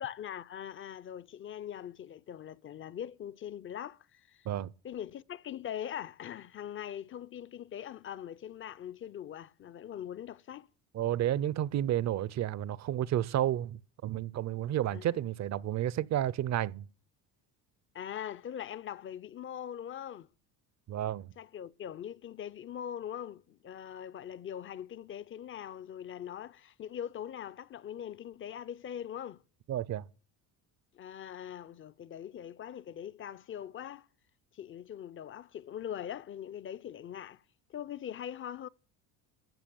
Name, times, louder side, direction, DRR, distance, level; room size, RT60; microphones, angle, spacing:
voice 1, 0.0-4.5 4.8-10.7 14.9-15.3 17.9-20.3 21.4-29.4 30.9-34.1 34.5-37.4 37.7-38.7, left 10 dB, 30° left, 0.5 m, -42 dB
voice 2, 10.9-16.8 20.9-21.3 29.7-30.0, right 12 dB, 40° right, 0.6 m, -31 dB
14.0 x 7.0 x 7.0 m
cardioid pair, 105°, 41 cm